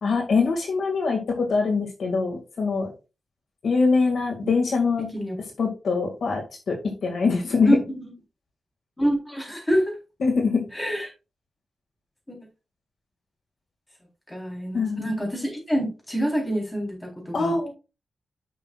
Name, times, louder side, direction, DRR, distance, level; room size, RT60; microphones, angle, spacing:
voice 1, 0.0-2.9 3.6-5.1 5.6-7.8 10.2-10.6 14.7-15.1 17.3-17.7, left 4 dB, 70° left, 2 dB, 2.2 m, -23 dB
voice 2, 7.7-8.1 9.0-9.9 10.7-11.1 12.3-12.4 14.3-17.5, equal, 10° left, -1 dB, 4.0 m, -26 dB
11.0 x 6.2 x 2.5 m, 0.29 s
wide cardioid pair, 140°, 0 cm